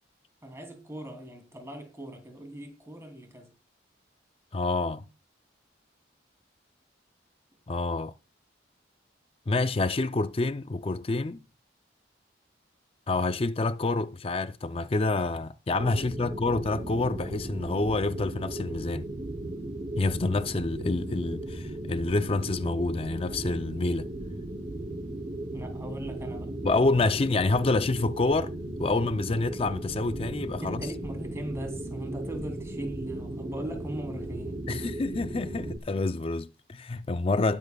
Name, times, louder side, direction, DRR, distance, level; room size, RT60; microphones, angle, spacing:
voice 1, 0.4-3.5 25.5-26.5 30.6-34.9, right 1 dB, 15° right, 2.8 m, -39 dB
voice 2, 4.5-5.1 7.7-8.1 9.5-11.4 13.1-19.1 20.0-24.1 26.6-28.5 28.8-30.8 34.7-37.6, left 3 dB, 30° left, 0.4 m, -27 dB
sound 1, 15.8-35.8, right 1 dB, 35° right, 0.9 m, -36 dB
20.0 x 7.3 x 2.3 m
head